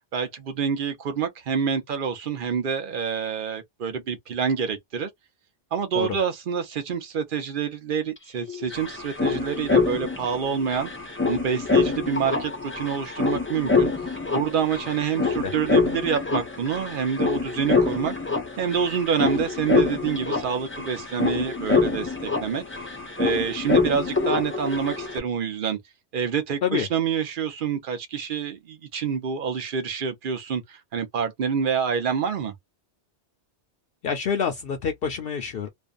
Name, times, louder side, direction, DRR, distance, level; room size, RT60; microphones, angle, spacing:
voice 1, 0.1-5.1 5.7-10.9 11.3-13.9 14.3-18.1 18.6-22.6 23.2-25.8 26.1-32.5, right 7 dB, 55° right, 0.8 m, -27 dB
sound 1, 8.2-8.3 8.4-25.2, left 4 dB, 15° left, 0.5 m, -26 dB
voice 2, 15.1-15.5 26.6-26.9 34.0-35.7, left 7 dB, 65° left, 0.7 m, -27 dB
2.6 x 2.2 x 2.4 m
omnidirectional pair, 1.1 m